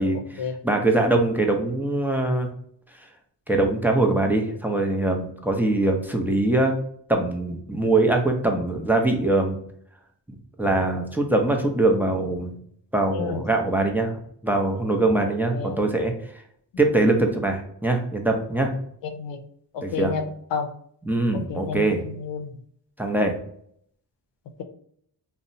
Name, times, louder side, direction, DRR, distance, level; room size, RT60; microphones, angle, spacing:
voice 1, 0.0-2.5 3.5-6.7 7.1-9.6 10.6-12.5 12.9-16.1 16.8-18.7 19.8-20.1 21.0-22.0 23.0-23.4, right 2 dB, 5° right, 2 dB, 0.5 m, -22 dB
voice 2, 19.7-20.2 20.5-20.7 21.5-22.5, left 6 dB, 80° left, 6 dB, 0.6 m, -30 dB
2.8 x 2.1 x 2.6 m, 0.65 s
cardioid pair, 60°, 43 cm